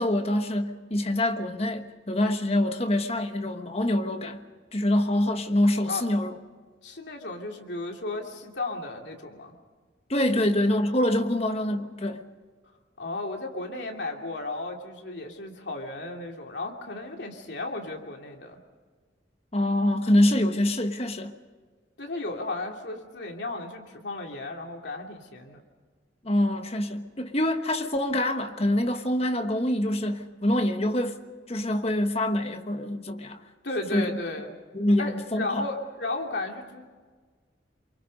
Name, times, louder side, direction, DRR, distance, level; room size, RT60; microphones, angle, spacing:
voice 1, 0.0-4.4 4.7-6.4 10.1-12.2 19.5-21.3 26.2-31.2 31.5-33.4 33.9-34.1 34.7-35.7, left 1 dB, 35° left, 1.3 m, -25 dB
voice 2, 6.8-9.5 10.3-10.4 13.0-18.6 22.0-25.6 33.6-34.5 35.0-36.8, left 2 dB, 70° left, 2.9 m, -34 dB
28.0 x 23.5 x 5.3 m
head